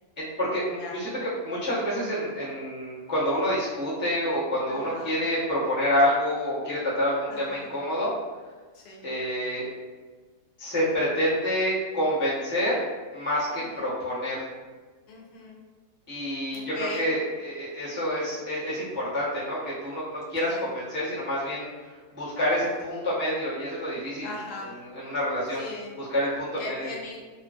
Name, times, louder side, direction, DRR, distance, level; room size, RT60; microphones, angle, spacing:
voice 1, 0.2-8.1 9.0-9.7 10.6-12.8 13.1-14.4 16.1-21.7 22.1-24.3 24.7-25.6 26.0-26.9, equal, 15° right, -11 dB, 0.4 m, -28 dB
voice 2, 4.7-5.1 7.3-7.7 8.7-9.0 13.5-13.9 15.1-15.6 16.5-17.1 20.4-20.6 24.2-24.8 25.6-25.9 26.6-27.2, left 2 dB, 80° left, -1 dB, 1.2 m, -39 dB
2.9 x 2.4 x 2.3 m, 1.4 s
omnidirectional pair, 1.7 m